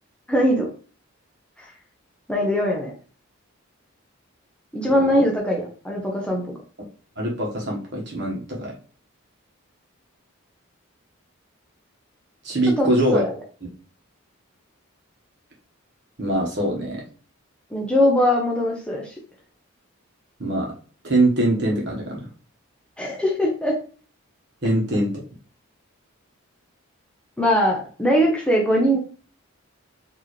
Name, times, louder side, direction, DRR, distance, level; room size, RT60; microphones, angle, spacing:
voice 1, 0.3-0.7 1.6-1.7 2.3-2.9 4.7-6.5 12.8-13.3 17.7-19.1 23.0-23.8 27.4-29.0, equal, 5° left, -2 dB, 0.6 m, -21 dB
voice 2, 7.2-8.7 12.4-13.2 16.2-17.0 20.4-20.7 21.0-22.3 24.6-25.1, right 1 dB, 55° right, -1 dB, 1.3 m, -23 dB
4.5 x 2.9 x 3.1 m, 0.40 s
head